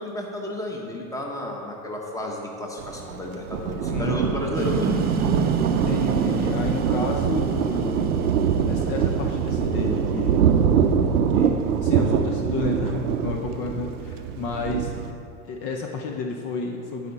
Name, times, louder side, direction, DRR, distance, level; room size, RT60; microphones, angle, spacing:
voice 1, 0.0-5.0, left 1 dB, 5° left, 0 dB, 1.1 m, -32 dB
Thunder, 2.8-15.1, right 7 dB, 90° right, 0.6 m, -24 dB
Kettle Boiling, 4.5-10.6, right 4 dB, 20° right, 0.6 m, -30 dB
voice 2, 5.9-8.1 8.7-10.4 11.3-14.9 15.5-17.1, left 4 dB, 45° left, 2 dB, 0.8 m, -31 dB
10.5 x 4.9 x 4.1 m, 2.5 s
hypercardioid pair, 100°, 44 cm